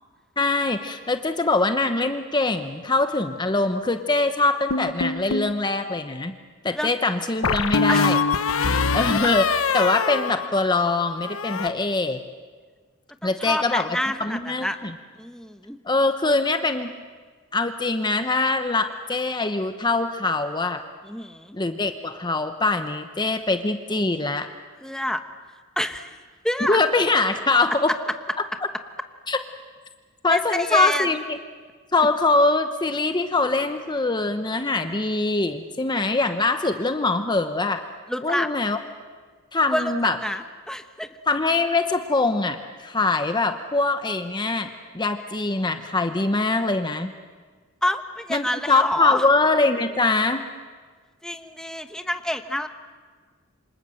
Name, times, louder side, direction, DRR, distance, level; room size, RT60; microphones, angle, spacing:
voice 1, 0.4-6.3 6.6-8.2 8.9-12.2 13.2-13.9 14.2-14.9 15.8-16.9 17.5-20.8 21.5-24.5 26.7-27.9 29.3-29.4 30.2-31.4 31.9-37.8 38.2-38.8 39.5-40.2 41.3-47.1 48.3-50.4, left 3 dB, 20° left, 8 dB, 0.9 m, -23 dB
sound 1, 4.7-5.6 7.4-10.9 11.2-11.7, left 4 dB, 85° left, 1.0 m, -24 dB
voice 2, 13.2-14.8 15.2-15.8 21.0-21.6 24.8-25.2 25.8-26.2 26.4-26.8 30.3-31.1 38.1-38.5 39.7-39.9 40.2-41.1 47.8-49.3 51.2-52.7, left 1 dB, 5° left, 7 dB, 1.1 m, -28 dB
28.0 x 26.5 x 7.8 m, 1.5 s
head